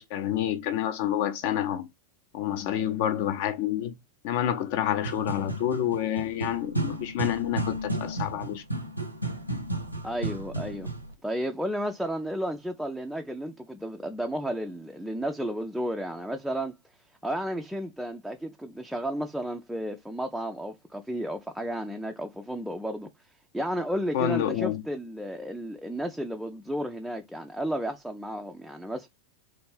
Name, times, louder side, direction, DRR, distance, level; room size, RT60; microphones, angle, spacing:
voice 1, 0.0-1.9 2.3-4.0 4.2-8.6 24.1-24.8, left 11 dB, 50° left, 0.6 m, -28 dB
sound 1, 4.9-11.1, right 2 dB, 90° right, 0.6 m, -33 dB
voice 2, 10.0-10.9 11.2-16.7 17.2-23.1 23.5-29.1, equal, ahead, 0.4 m, -33 dB
3.3 x 2.5 x 3.2 m
figure-of-eight pair, 90°, 0 cm